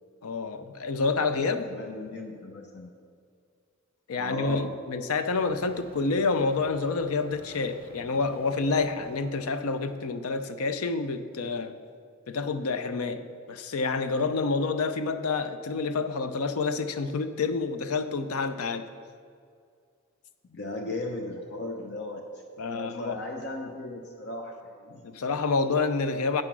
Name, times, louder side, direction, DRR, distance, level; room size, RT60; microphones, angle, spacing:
voice 1, 0.2-1.7 4.1-11.8 12.3-18.8 22.6-23.2 25.0-26.4, left 4 dB, 90° left, 10 dB, 0.5 m, -28 dB
voice 2, 1.6-2.9 4.2-4.7 20.5-22.2 22.7-25.0, left 1 dB, 55° left, 2 dB, 0.8 m, -36 dB
Ocean, 5.3-10.2, right 2 dB, 25° right, 0.8 m, -50 dB
8.9 x 6.0 x 6.0 m, 2.2 s
head